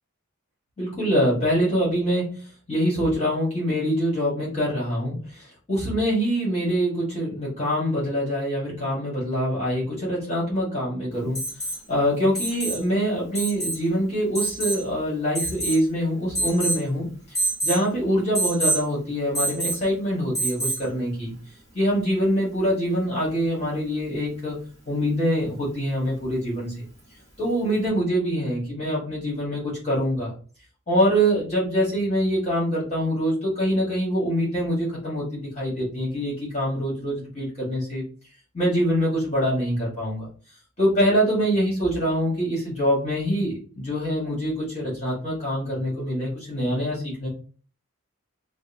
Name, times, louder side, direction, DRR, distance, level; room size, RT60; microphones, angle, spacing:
voice 1, 0.8-11.4 11.9-21.3 21.7-24.6 24.8-26.8 27.4-30.3 30.9-38.0 38.5-40.3 40.8-47.3, equal, 30° left, -6 dB, 1.3 m, -24 dB
Alarm, 11.3-11.8 12.3-12.8 13.3-13.8 14.3-14.8 15.3-15.9 16.3-16.8 17.3-17.8 18.3-18.8 19.3-19.8 20.3-20.8 22.6-22.7, right 2 dB, 15° left, 1.5 m, -27 dB
5.0 x 2.0 x 2.5 m, 0.39 s
head